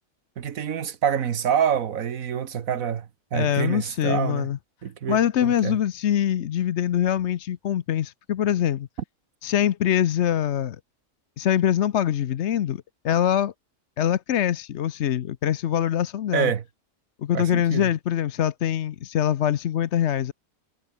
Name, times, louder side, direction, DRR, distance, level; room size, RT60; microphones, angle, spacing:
voice 1, 0.4-3.1 3.3-4.5 4.8-5.8 16.3-16.6 17.3-17.9, right 8 dB, 85° right, 1.6 m, -26 dB
voice 2, 3.3-4.6 5.1-8.9 9.4-10.8 11.4-13.5 14.0-16.5 17.2-20.3, left 10 dB, 60° left, 0.9 m, -24 dB
omnidirectional pair, 1.4 m